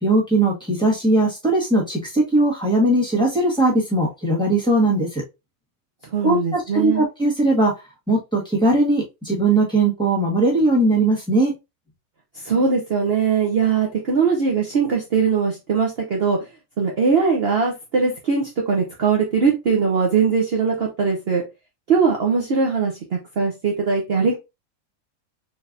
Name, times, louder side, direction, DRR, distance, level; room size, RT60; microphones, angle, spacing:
voice 1, 0.0-5.2 6.2-7.7 8.1-11.5, right 2 dB, 5° left, -4 dB, 1.6 m, -19 dB
voice 2, 6.1-7.0 12.3-16.4 16.8-21.4 21.9-24.3, right 5 dB, 50° right, -1 dB, 0.9 m, -21 dB
4.5 x 3.3 x 2.6 m, 0.24 s
omnidirectional pair, 1.5 m